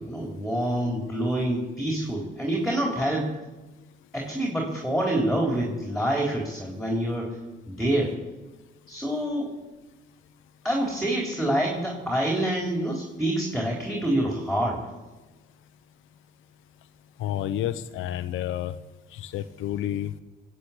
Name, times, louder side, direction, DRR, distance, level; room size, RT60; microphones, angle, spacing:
voice 1, 0.0-3.3 4.1-7.4 7.7-8.2 8.9-9.5 10.6-14.8, right 1 dB, ahead, -1 dB, 3.8 m, -26 dB
voice 2, 17.2-18.8 19.1-20.2, left 11 dB, 90° left, 11 dB, 0.9 m, -30 dB
20.0 x 7.8 x 8.6 m, 1.1 s
cardioid pair, 90°, 20 cm